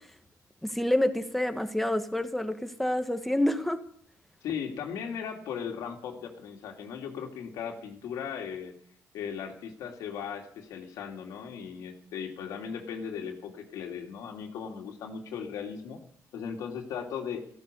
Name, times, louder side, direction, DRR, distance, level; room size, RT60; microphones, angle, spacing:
voice 1, 0.6-3.8, left 1 dB, 5° left, 7 dB, 1.7 m, -28 dB
voice 2, 4.4-8.7 9.1-16.0 16.3-17.4, left 7 dB, 85° left, 2 dB, 2.7 m, -37 dB
15.0 x 13.5 x 7.0 m, 0.62 s
cardioid pair, 105°, 6 cm